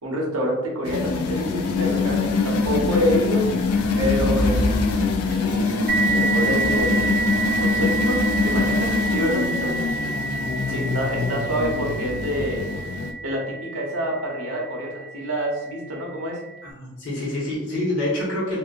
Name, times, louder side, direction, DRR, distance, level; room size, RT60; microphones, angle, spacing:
voice 1, 0.0-3.6 4.0-4.9 5.3-7.2 7.6-9.9 10.7-12.6 13.2-16.4, equal, 70° right, -2 dB, 0.8 m, -27 dB
sound 1, 0.8-13.1, left 3 dB, 75° left, 0.3 m, -23 dB
sound 2, 5.9-15.1, right 4 dB, 45° right, 0.4 m, -28 dB
voice 2, 16.6-18.6, left 1 dB, 55° left, -6 dB, 1.1 m, -27 dB
2.6 x 2.4 x 2.4 m, 1.0 s
head